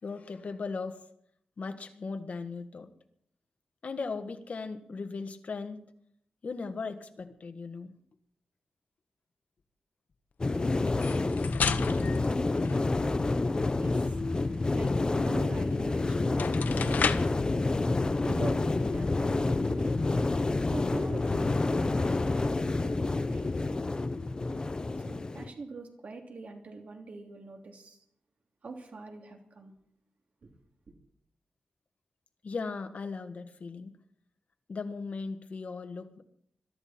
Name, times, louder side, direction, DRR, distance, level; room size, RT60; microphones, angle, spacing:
voice 1, 0.0-1.0 1.6-2.9 3.8-5.8 6.4-7.9 32.4-33.9 34.7-36.2, left 4 dB, 55° left, 7 dB, 1.5 m, -37 dB
sound 1, 10.4-25.5, left 3 dB, 30° left, 0.8 m, -28 dB
sound 2, 10.9-13.3 15.7-15.8 16.2-17.4, left 6 dB, 85° left, 0.8 m, -33 dB
voice 2, 13.2-23.5 25.0-28.0 28.6-29.7 30.4-30.5, right 3 dB, 60° right, 2 dB, 2.9 m, -45 dB
22.0 x 13.0 x 4.4 m, 0.69 s
wide cardioid pair, 110°, 3 cm